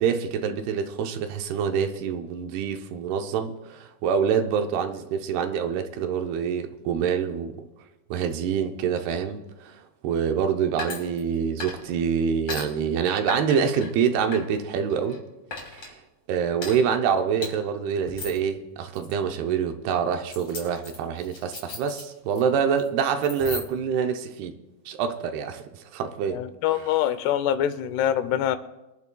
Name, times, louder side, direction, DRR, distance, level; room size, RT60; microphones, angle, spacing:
voice 1, 0.0-7.5 8.1-9.8 10.0-15.2 15.7-15.9 16.3-24.5 24.9-25.7 25.9-26.4, right 7 dB, 80° right, 6 dB, 2.7 m, -26 dB
sound 1, 10.8-11.3 11.6-12.0 12.5-12.6 13.3-13.9 14.3-15.2 15.5-15.9 16.6-16.8 17.4-17.5 18.1-18.4 18.9-19.1 20.3-22.4 22.7-22.9 23.2-23.9, left 4 dB, 35° left, 3.4 m, -36 dB
voice 2, 26.3-28.6, left 10 dB, 90° left, 12 dB, 2.8 m, -24 dB
24.0 x 11.0 x 2.3 m, 1.0 s
omnidirectional pair, 4.6 m